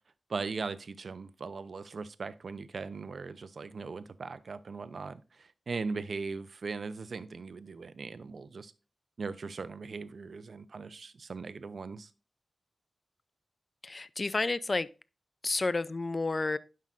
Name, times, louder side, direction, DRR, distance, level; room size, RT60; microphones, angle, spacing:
voice 1, 0.3-8.7 9.2-12.1, right 4 dB, 70° right, 0.6 m, -39 dB
voice 2, 13.8-14.9 15.4-16.6, left 3 dB, 40° left, 0.4 m, -30 dB
11.0 x 5.7 x 2.5 m
cardioid pair, 60°, 0 cm